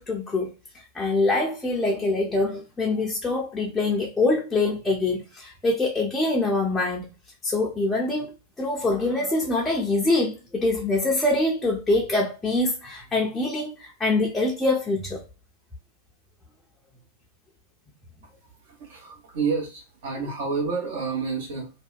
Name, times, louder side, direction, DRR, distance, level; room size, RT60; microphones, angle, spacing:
voice 1, 0.0-7.1 7.4-8.3 8.6-15.2, left 2 dB, 10° left, 0.6 m, -24 dB
voice 2, 18.4-21.7, right 5 dB, 55° right, 1.1 m, -29 dB
2.7 x 2.2 x 2.3 m
figure-of-eight pair, 90°, 0 cm